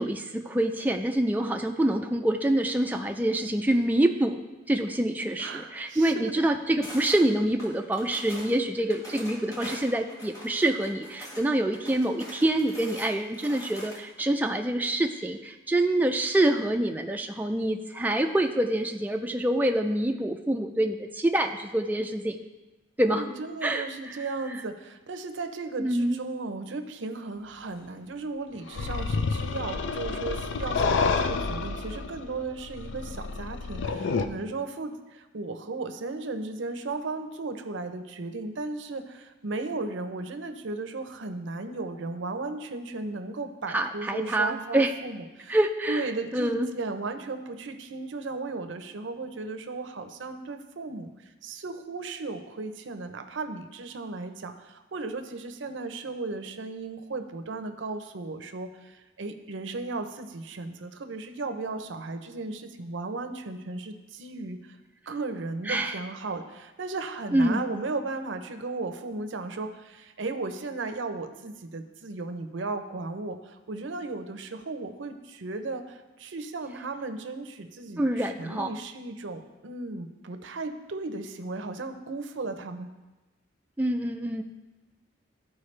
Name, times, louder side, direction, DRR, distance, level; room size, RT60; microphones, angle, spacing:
voice 1, 0.0-4.4 4.7-22.4 23.0-23.2 23.6-23.9 25.8-26.2 43.7-44.9 45.5-46.1 46.3-46.7 65.7-65.9 67.3-67.6 78.0-78.7 83.8-84.4, right 1 dB, 10° right, 4 dB, 0.3 m, -26 dB
voice 2, 5.4-6.5 23.0-45.6 45.9-64.8 65.1-82.9, right 3 dB, 85° right, 8 dB, 0.6 m, -35 dB
sound 1, 6.8-7.2 7.6-8.5 8.9-11.4 11.7-14.2, equal, 20° left, 1.5 m, -43 dB
sound 2, 28.7-34.3, left 4 dB, 80° left, 0.5 m, -29 dB
13.0 x 4.7 x 3.2 m, 1.1 s
head